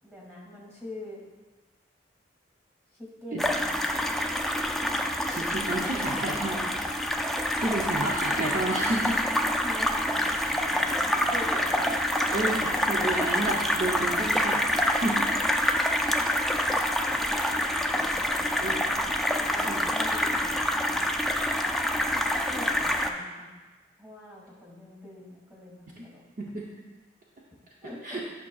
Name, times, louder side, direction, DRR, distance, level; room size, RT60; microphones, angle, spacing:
voice 1, 0.0-1.2 3.0-4.2 7.6-8.1 9.6-12.2 17.2-19.0 19.4-21.0 22.1-23.5 24.0-26.2 27.8-28.2, left 1 dB, 15° right, -3 dB, 1.8 m, -44 dB
sound 1, 3.4-23.1, equal, ahead, 0.3 m, -27 dB
voice 2, 5.3-7.0 7.6-9.2 10.4-10.5 11.2-11.3 12.3-15.3 18.6-19.0 19.7-19.9 26.0-26.1 26.4-26.7 28.0-28.2, right 1 dB, 45° right, -3 dB, 0.7 m, -31 dB
11.0 x 6.1 x 2.3 m, 1.3 s
head